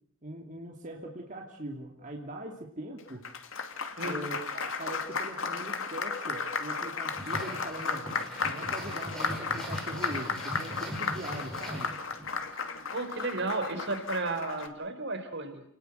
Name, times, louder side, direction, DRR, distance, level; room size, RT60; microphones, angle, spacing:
voice 1, 0.2-3.3 4.0-8.1 8.4-12.0, right 1 dB, 40° right, 1 dB, 2.8 m, -41 dB
Applause, 3.0-14.7, left 4 dB, 70° left, 2.6 m, -34 dB
sound 1, 7.2-12.4, equal, ahead, 7.5 m, -40 dB
voice 2, 12.9-15.6, right 3 dB, 60° right, 7 dB, 3.9 m, -33 dB
29.5 x 19.5 x 8.0 m, 0.66 s
head